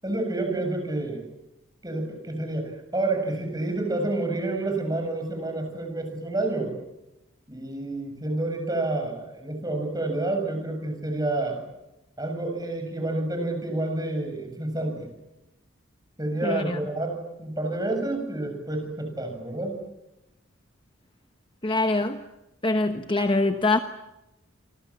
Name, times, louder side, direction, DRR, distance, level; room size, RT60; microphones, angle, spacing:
voice 1, 0.0-1.2 1.8-6.7 7.5-11.6 12.2-15.1 16.2-19.8, right 2 dB, 20° right, 4 dB, 7.3 m, -29 dB
voice 2, 16.4-16.8 21.6-22.2 22.6-23.8, left 2 dB, 25° left, 7 dB, 1.1 m, -24 dB
29.0 x 26.5 x 7.4 m, 0.94 s
head